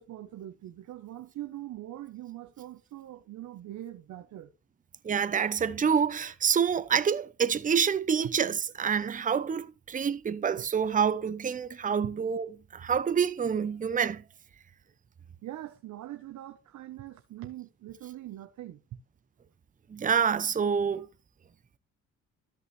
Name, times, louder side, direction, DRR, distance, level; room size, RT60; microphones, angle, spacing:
voice 1, 0.0-4.5 15.4-19.0, right 13 dB, 75° right, 1.0 m, -42 dB
voice 2, 5.0-14.2 19.9-21.1, right 7 dB, 25° right, 0.7 m, -27 dB
13.0 x 5.6 x 3.3 m
cardioid pair, 90°, 30 cm